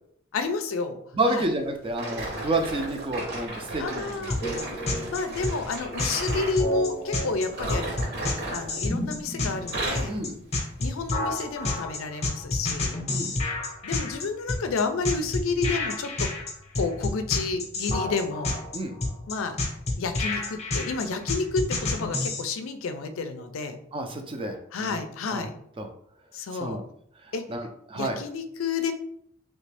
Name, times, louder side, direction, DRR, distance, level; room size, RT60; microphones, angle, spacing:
voice 1, 0.3-1.0 1.3-1.5 3.8-4.4 5.1-7.9 8.5-10.2 10.8-13.0 13.4-13.5 13.8-16.3 16.8-18.6 19.3-19.6 20.0-23.8 24.7-25.5 26.3-26.8 27.3-27.4 27.9-28.9, left 4 dB, 85° left, 8 dB, 0.4 m, -30 dB
voice 2, 1.1-4.3 10.1-10.3 13.1-13.3 18.7-19.0 23.9-24.6 24.9-25.0 25.3-25.4 25.8-25.9 26.6-26.8 27.5-28.2, right 2 dB, 25° right, 5 dB, 0.4 m, -29 dB
sound 1, 1.9-6.6 7.4-9.2 9.5-10.2 10.8-11.0 11.6-11.7, right 1 dB, 55° right, 1.0 m, -35 dB
sound 2, 4.3-22.4, left 2 dB, 35° left, 0.7 m, -29 dB
3.2 x 2.6 x 3.3 m, 0.68 s
head